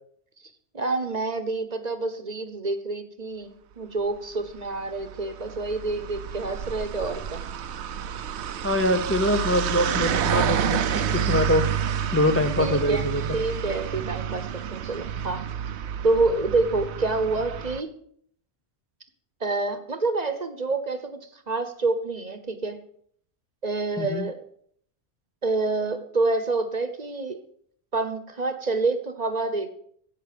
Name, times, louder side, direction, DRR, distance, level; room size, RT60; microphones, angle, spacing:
voice 1, 0.7-7.4 12.6-15.4 16.0-17.9 19.4-22.8 23.6-24.4 25.4-27.4 27.9-29.7, right 3 dB, 40° right, 10 dB, 1.1 m, -27 dB
sound 1, 4.6-17.8, right 8 dB, 75° right, 1.0 m, -29 dB
voice 2, 8.6-11.7 12.1-13.4 24.0-24.2, left 1 dB, 15° left, 5 dB, 0.6 m, -24 dB
11.0 x 8.3 x 6.8 m, 0.64 s
omnidirectional pair, 1.2 m